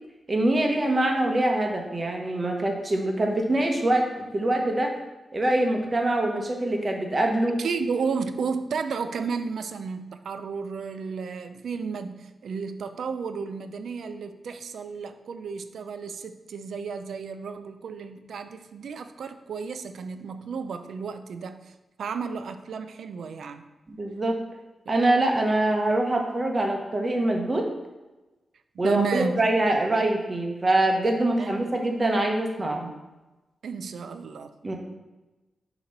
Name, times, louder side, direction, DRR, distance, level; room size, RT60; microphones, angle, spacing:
voice 1, 0.3-4.9 5.3-7.6 24.0-24.4 24.9-27.7 28.8-32.9 34.6-34.8, right 1 dB, 30° right, 2 dB, 0.9 m, -24 dB
voice 2, 7.6-21.7 22.0-23.6 28.7-29.4 31.4-31.7 33.6-34.5, right 5 dB, 85° right, 9 dB, 0.4 m, -33 dB
6.5 x 3.0 x 5.3 m, 1.1 s
wide cardioid pair, 115°, 0 cm